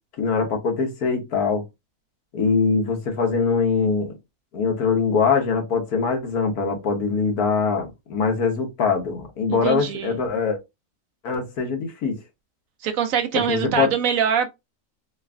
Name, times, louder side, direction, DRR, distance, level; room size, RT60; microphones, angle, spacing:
voice 1, 0.2-1.6 2.3-4.1 4.5-10.6 11.2-12.2 13.5-13.9, left 5 dB, 80° left, 1.5 m, -22 dB
voice 2, 9.5-10.2 12.8-14.5, right 8 dB, 70° right, 1.0 m, -23 dB
3.9 x 2.4 x 3.3 m
omnidirectional pair, 1.6 m